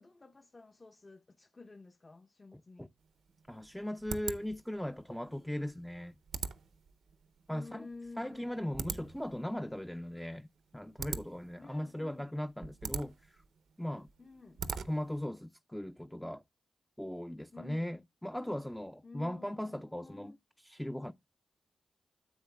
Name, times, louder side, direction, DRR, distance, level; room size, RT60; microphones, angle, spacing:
voice 1, 0.0-2.9 7.5-9.2 11.6-12.4 14.2-14.7 17.5-18.0 19.0-20.4, left 3 dB, 35° left, 0.7 m, -52 dB
sound 1, 3.0-15.2, right 6 dB, 85° right, 0.6 m, -44 dB
voice 2, 3.5-6.1 7.5-7.9 8.2-10.5 10.7-13.4 13.8-14.1 14.8-16.4 17.0-21.1, left 1 dB, 5° left, 0.4 m, -38 dB
10.0 x 7.5 x 2.2 m
cardioid pair, 60°, 0 cm